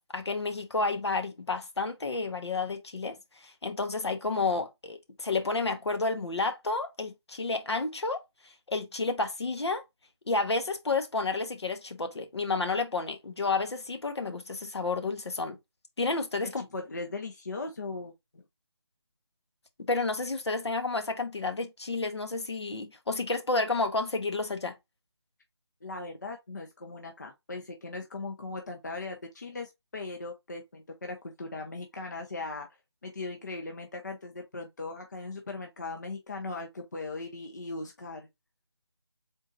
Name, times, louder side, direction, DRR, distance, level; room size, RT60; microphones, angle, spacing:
voice 1, 0.0-9.8 10.3-15.6 16.0-16.6 19.8-24.8, left 3 dB, 70° left, 1.0 m, -31 dB
voice 2, 16.4-18.4 25.8-32.7 33.0-38.3, left 3 dB, 40° left, 0.6 m, -39 dB
3.8 x 2.7 x 3.7 m
figure-of-eight pair, 175°, 15 cm